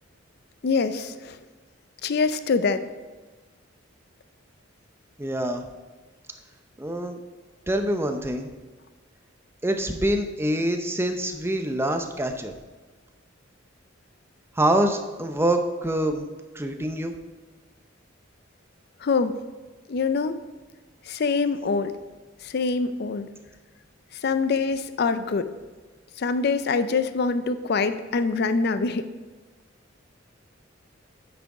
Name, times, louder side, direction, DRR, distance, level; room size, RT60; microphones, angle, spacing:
voice 1, 0.6-1.4 2.0-2.8 19.0-19.4 19.9-20.3 21.1-21.9 22.4-23.3 24.2-25.5 26.2-29.1, left 4 dB, 50° left, 11 dB, 0.4 m, -24 dB
voice 2, 5.2-5.6 6.8-7.2 7.7-8.5 9.6-12.5 14.6-16.2 16.5-17.1, right 1 dB, 10° right, 5 dB, 0.6 m, -25 dB
9.0 x 6.1 x 4.8 m, 1.3 s
head